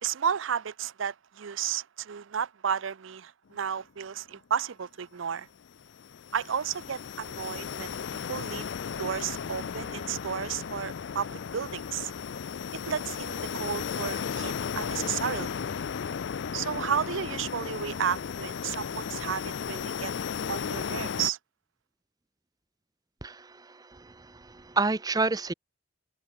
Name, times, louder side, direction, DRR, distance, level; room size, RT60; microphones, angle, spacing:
voice 1, 0.0-5.5 6.3-8.7 9.0-12.1 12.8-15.5 16.5-20.1 20.5-21.4, right 7 dB, 65° right, 0.5 m, -33 dB
sound 1, 5.6-21.3, left 6 dB, 55° left, 0.4 m, -35 dB
voice 2, 23.2-25.5, right 3 dB, 20° right, 0.6 m, -30 dB
head